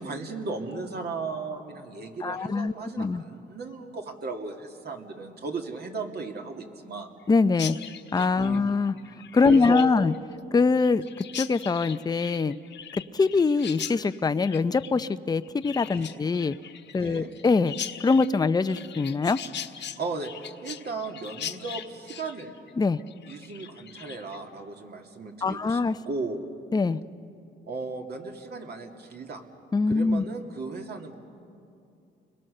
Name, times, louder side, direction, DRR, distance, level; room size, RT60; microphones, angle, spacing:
voice 1, 0.0-7.1 8.3-8.7 9.4-10.0 15.9-16.2 17.0-17.3 20.0-20.3 20.6-22.5 23.3-26.4 27.7-29.4 29.9-31.1, right 4 dB, 55° right, 2 dB, 2.7 m, -36 dB
voice 2, 2.2-3.2 7.3-7.8 8.1-9.0 9.3-10.1 10.5-12.6 13.1-16.6 16.9-17.7 18.0-19.4 22.8-23.0 25.4-26.0 26.7-27.0 29.7-30.2, left 4 dB, 20° left, 12 dB, 0.6 m, -23 dB
Chirp tweet, 7.5-24.4, left 9 dB, 65° left, 1.4 m, -40 dB
29.5 x 22.0 x 6.7 m, 2.6 s
cardioid pair, 90°, 20 cm